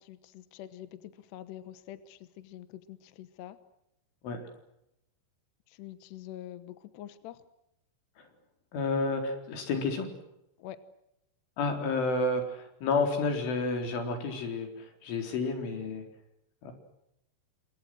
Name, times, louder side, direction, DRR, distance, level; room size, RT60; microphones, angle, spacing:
voice 1, 0.0-3.6 5.7-7.4 10.6-10.8, left 12 dB, 70° left, 12 dB, 3.1 m, -46 dB
voice 2, 8.7-10.2 11.6-16.1 16.6-16.7, left 3 dB, 90° left, 5 dB, 6.6 m, -30 dB
29.5 x 26.5 x 6.3 m, 0.83 s
omnidirectional pair, 5.4 m